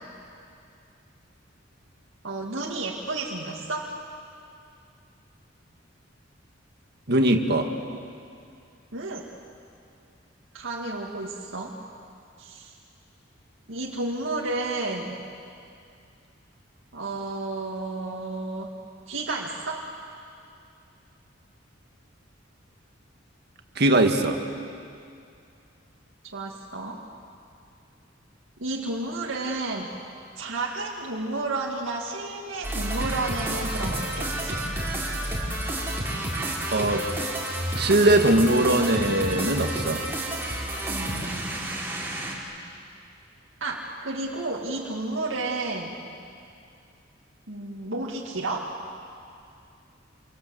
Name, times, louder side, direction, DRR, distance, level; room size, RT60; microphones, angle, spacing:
voice 1, 2.2-3.9 8.9-9.3 10.5-11.8 12.4-12.7 13.7-15.2 16.9-18.7 19.1-19.9 26.3-27.0 28.6-29.9 30.4-34.6 40.9-41.6 43.6-46.0 47.5-48.8, right 2 dB, 85° right, -3 dB, 2.2 m, -31 dB
voice 2, 7.1-7.7 23.8-24.4 36.7-37.1 37.7-40.0, right 1 dB, 55° right, 5 dB, 1.9 m, -21 dB
sound 1, 32.6-42.4, right 1 dB, 10° right, 4.1 m, -30 dB
27.0 x 24.5 x 7.9 m, 2.5 s
head